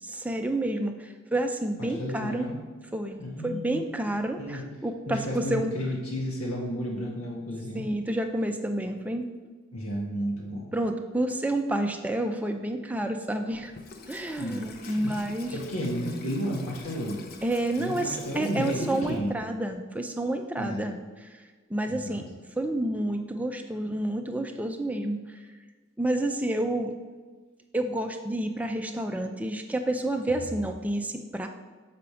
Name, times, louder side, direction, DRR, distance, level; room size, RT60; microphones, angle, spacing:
voice 1, 0.0-2.5 2.9-5.7 7.7-9.3 10.7-13.7 14.1-15.6 17.4-21.4 21.7-22.2 22.6-25.4 26.0-26.9 27.7-31.5, right 1 dB, 5° right, 5 dB, 0.4 m, -29 dB
voice 2, 1.8-2.6 3.2-3.8 4.4-4.6 5.0-7.8 9.7-10.7 14.4-15.1 15.5-17.2 17.8-19.4 20.6-20.8 21.9-22.2, equal, 85° left, -3 dB, 1.5 m, -32 dB
Water tap faucet / Sink (filling or washing), 13.5-19.8, left 4 dB, 45° left, 0.5 m, -47 dB
7.2 x 5.0 x 4.9 m, 1.4 s
head